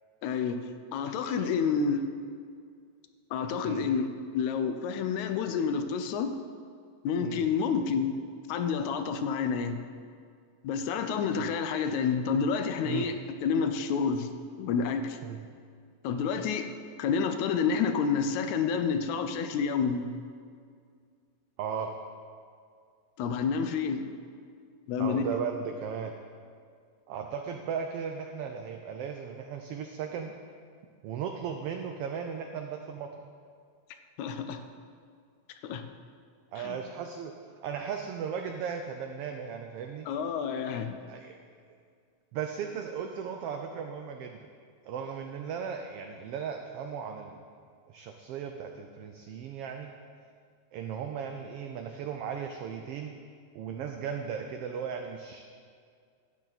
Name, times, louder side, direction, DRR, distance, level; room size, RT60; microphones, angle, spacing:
voice 1, 0.2-0.6 0.9-2.1 3.3-6.3 7.0-8.1 8.5-9.8 10.6-13.1 13.4-14.3 14.6-15.2 16.0-16.7 17.0-20.1 23.2-24.1 24.9-25.4 34.2-34.6 35.6-35.8 36.6-36.8 40.1-41.0, left 6 dB, 80° left, 7 dB, 2.0 m, -29 dB
voice 2, 21.6-21.9 25.0-26.1 27.1-30.3 31.0-33.1 36.5-37.3 37.6-40.1 40.7-40.8 41.1-41.4 42.3-44.4 44.8-47.4 47.9-49.9 50.7-53.1 53.5-55.4, right 7 dB, 85° right, 4 dB, 1.3 m, -36 dB
12.0 x 9.1 x 4.0 m, 2.2 s
omnidirectional pair, 3.3 m